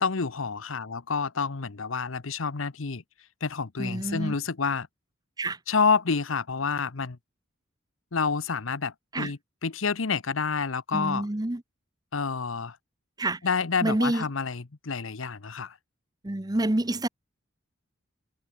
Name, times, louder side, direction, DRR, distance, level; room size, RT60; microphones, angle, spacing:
voice 1, 0.0-3.0 3.4-4.9 5.7-7.2 8.1-11.3 12.1-12.8 13.4-15.7, left 5 dB, 80° left, 1.0 m, -28 dB
voice 2, 3.8-4.3 5.4-5.6 9.1-9.3 10.9-11.6 13.2-13.4 13.8-14.2 16.2-17.1, right 1 dB, 20° right, 0.9 m, -27 dB
head